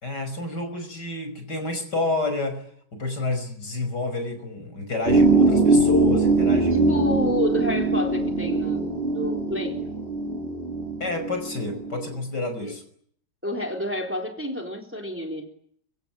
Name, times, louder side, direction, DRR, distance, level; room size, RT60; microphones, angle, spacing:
voice 1, 0.0-2.6 2.9-6.9 11.0-12.8, left 2 dB, 50° left, 7 dB, 6.4 m, -29 dB
sound 1, 5.1-12.0, right 2 dB, 25° right, 4.1 m, -22 dB
voice 2, 6.7-9.8 12.6-12.7 13.4-15.5, left 1 dB, 5° right, 3 dB, 3.9 m, -29 dB
26.0 x 24.5 x 8.9 m, 0.64 s
omnidirectional pair, 2.4 m